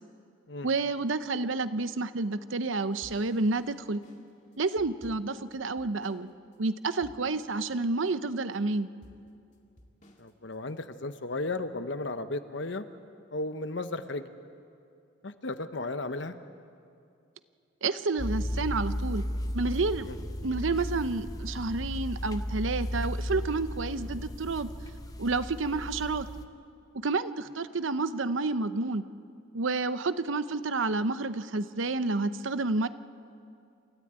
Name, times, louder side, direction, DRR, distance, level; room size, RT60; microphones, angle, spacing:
voice 1, 0.6-4.0 4.6-6.3 6.6-8.9 17.8-19.2 19.5-20.1 20.4-24.7 25.2-26.3 26.9-29.0 29.5-32.9, right 3 dB, 80° right, 12 dB, 0.8 m, -29 dB
sound 1, 3.0-6.3 6.5-6.6 7.0-7.5 8.0-8.5 9.0-10.8, equal, 40° left, 2.1 m, -55 dB
voice 2, 10.2-12.8 13.3-14.3 15.2-16.3 20.1-20.2, left 2 dB, 65° left, 10 dB, 1.0 m, -34 dB
sound 2, 18.2-26.5, equal, 20° left, 0.8 m, -35 dB
28.0 x 14.0 x 8.9 m, 2.5 s
head